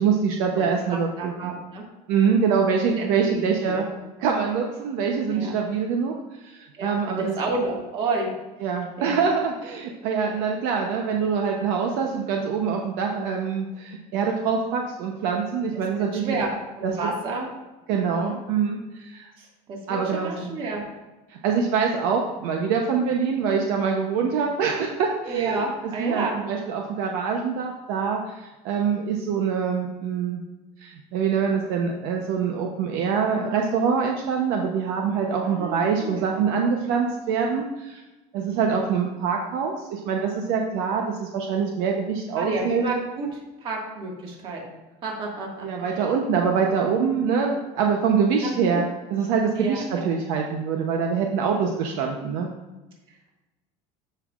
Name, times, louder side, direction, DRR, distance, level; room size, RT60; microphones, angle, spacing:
voice 1, 0.0-1.5 2.1-3.9 4.2-6.1 6.4-7.3 8.6-16.4 16.8-16.9 17.9-19.3 19.9-20.5 21.3-25.6 26.0-30.4 30.8-38.0 38.3-42.8 45.6-52.5, right 6 dB, 65° right, 1 dB, 0.8 m, -24 dB
voice 2, 0.5-1.9 3.0-3.8 5.3-5.5 6.8-8.3 9.0-9.2 16.1-16.5 16.8-17.5 17.9-18.4 19.4-20.8 25.3-26.3 35.4-36.2 38.4-38.8 42.4-44.7 45.0-45.7 48.4-48.9 49.6-50.1, right 3 dB, 35° right, -1 dB, 1.8 m, -31 dB
13.0 x 5.5 x 2.4 m, 1.1 s
cardioid pair, 165°, 15 cm